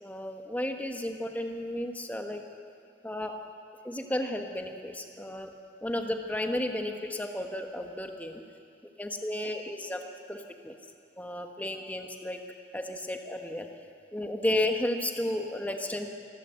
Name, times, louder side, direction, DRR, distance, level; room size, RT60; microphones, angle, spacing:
voice 1, 0.0-2.4 3.0-3.3 3.8-5.5 5.8-8.4 9.0-10.0 10.3-10.7 11.2-12.4 12.7-13.6 14.1-16.1, left 1 dB, 10° left, 3 dB, 1.3 m, -33 dB
26.0 x 13.0 x 7.8 m, 2.4 s
head